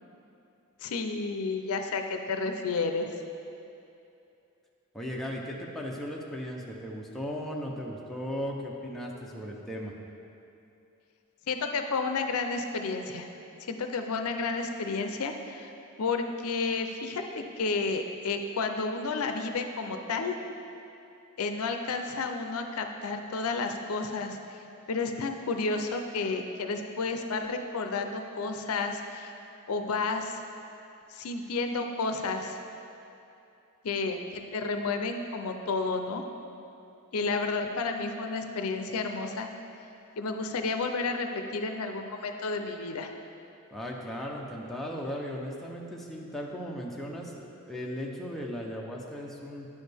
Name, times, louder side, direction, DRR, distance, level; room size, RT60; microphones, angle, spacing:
voice 1, 0.8-3.1 11.5-13.3 13.6-15.7 16.0-20.4 21.4-29.3 29.7-30.4 31.1-32.6 33.8-36.2 37.1-39.5 40.2-43.1, left 4 dB, 70° left, 5 dB, 0.5 m, -31 dB
voice 2, 4.9-9.9 43.7-49.7, equal, ahead, -3 dB, 0.6 m, -37 dB
9.5 x 6.3 x 3.4 m, 2.8 s
head